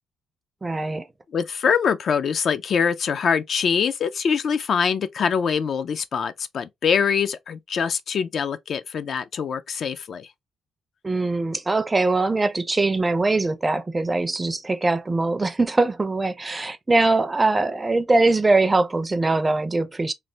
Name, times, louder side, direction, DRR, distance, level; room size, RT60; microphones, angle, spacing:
voice 1, 0.6-1.1 11.0-20.1, right 2 dB, 20° right, 0.4 m, -22 dB
voice 2, 1.3-10.3, left 6 dB, 55° left, 0.3 m, -24 dB
3.2 x 2.1 x 2.7 m
cardioid pair, 90°, 0 cm